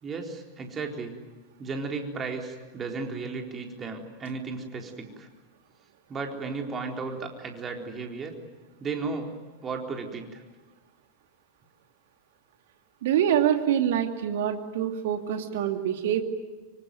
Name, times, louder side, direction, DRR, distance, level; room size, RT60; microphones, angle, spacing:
voice 1, 0.0-1.2 1.6-5.3 6.1-8.3 8.8-9.3 9.6-10.4, right 4 dB, 20° right, 3 dB, 4.0 m, -34 dB
voice 2, 13.0-16.2, right 10 dB, 55° right, 6 dB, 2.5 m, -25 dB
25.0 x 25.0 x 9.4 m, 1.2 s
figure-of-eight pair, 90°, 0 cm